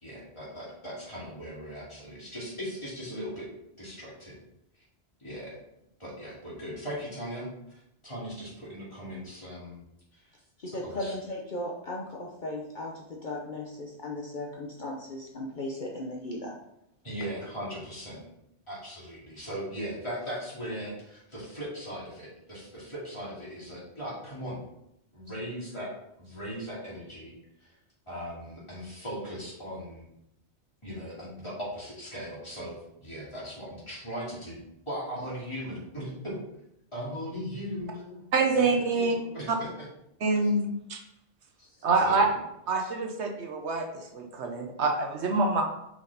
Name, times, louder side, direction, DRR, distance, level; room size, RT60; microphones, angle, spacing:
voice 1, 0.0-3.5 3.8-4.4 5.2-5.6 6.0-9.8 10.1-10.2 10.8-11.1 17.0-18.2 18.7-24.6 25.1-25.9 26.2-27.7 28.1-30.1 30.8-34.6 34.9-36.4 36.9-38.3 38.5-38.7 38.9-39.7 40.4-40.5 41.6-41.8 42.0-42.4, equal, 25° left, -7 dB, 2.8 m, -38 dB
voice 2, 10.6-16.6, left 1 dB, 50° left, -1 dB, 0.9 m, -36 dB
voice 3, 38.3-39.2 39.5-39.6 40.2-41.0 41.8-42.3 42.7-45.6, right 3 dB, 80° right, 3 dB, 1.3 m, -26 dB
5.8 x 4.8 x 4.0 m, 0.80 s
omnidirectional pair, 1.1 m